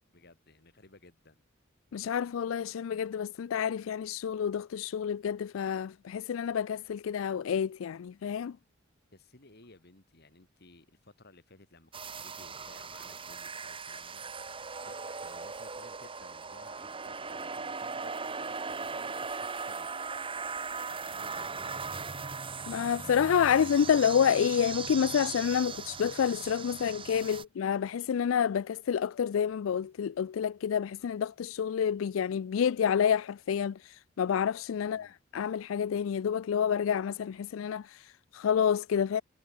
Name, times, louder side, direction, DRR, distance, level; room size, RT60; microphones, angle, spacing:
voice 1, 0.1-1.4 9.1-11.9 12.2-14.2 14.8-19.9 20.7-21.9 34.8-35.2, left 2 dB, 55° left, 2.7 m, -57 dB
voice 2, 1.9-8.6 22.7-39.2, left 8 dB, 85° left, 0.4 m, -29 dB
sound 1, 11.9-27.4, right 5 dB, 25° right, 1.5 m, -39 dB
head